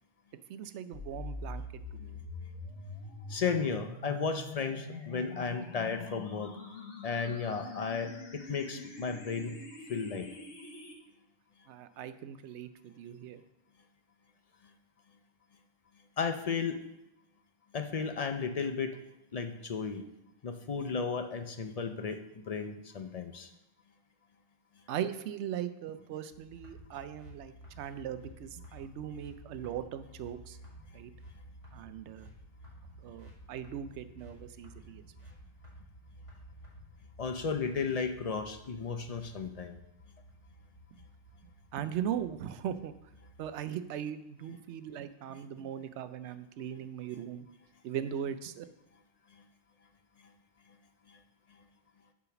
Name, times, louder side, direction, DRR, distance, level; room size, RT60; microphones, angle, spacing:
voice 1, 0.5-2.2 11.7-13.4 24.9-30.6 30.9-31.1 31.7-32.3 33.0-35.0 41.7-42.9 43.4-47.5 47.8-48.6, right 9 dB, 85° right, 12 dB, 0.9 m, -39 dB
sound 1, 0.9-10.9, left 3 dB, 85° left, 1.4 m, -44 dB
voice 2, 3.3-6.5 7.0-9.6 9.9-10.3 16.2-16.8 17.7-19.0 19.3-20.0 20.4-23.5 37.2-39.8 49.3-49.4 51.1-51.2, left 5 dB, 50° left, 8 dB, 0.5 m, -34 dB
sound 2, 26.3-43.5, equal, 30° left, 2.0 m, -53 dB
6.9 x 4.9 x 5.9 m, 0.85 s
omnidirectional pair, 1.1 m